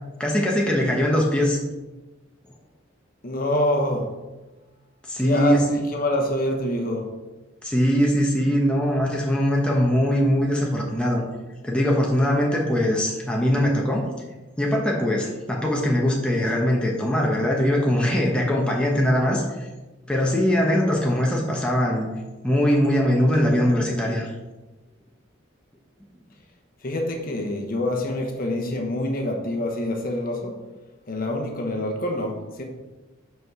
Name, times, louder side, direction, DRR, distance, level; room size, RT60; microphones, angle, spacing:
voice 1, 0.2-1.6 5.1-5.8 7.6-11.2 11.6-14.0 14.6-19.7 20.1-22.1 22.4-24.3, equal, 5° left, -2 dB, 1.0 m, -21 dB
voice 2, 3.2-4.2 5.2-7.1 26.8-30.6 31.1-32.6, left 1 dB, 40° left, 1 dB, 1.1 m, -26 dB
6.0 x 4.7 x 6.1 m, 1.1 s
head